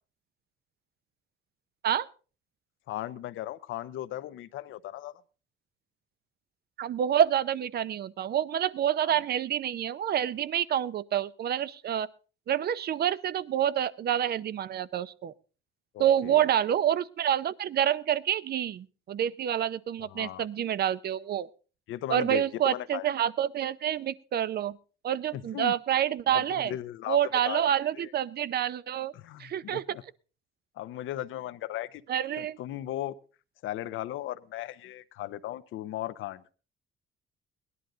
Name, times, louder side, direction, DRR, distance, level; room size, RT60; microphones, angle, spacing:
voice 1, 2.9-5.2 9.0-9.2 15.9-16.5 20.1-20.5 21.9-23.1 25.3-25.7 26.3-27.2 27.5-27.6 28.0-28.1 29.1-30.0 30.8-32.0 32.4-33.1 33.6-36.4, left 13 dB, 75° left, 14 dB, 0.8 m, -37 dB
voice 2, 6.8-12.1 12.5-15.3 16.0-21.5 22.1-24.8 25.0-26.7 27.1-29.1 29.4-29.8 32.1-32.6, right 10 dB, 50° right, 19 dB, 0.6 m, -28 dB
17.5 x 11.0 x 3.8 m, 0.36 s
cardioid pair, 100°, 21 cm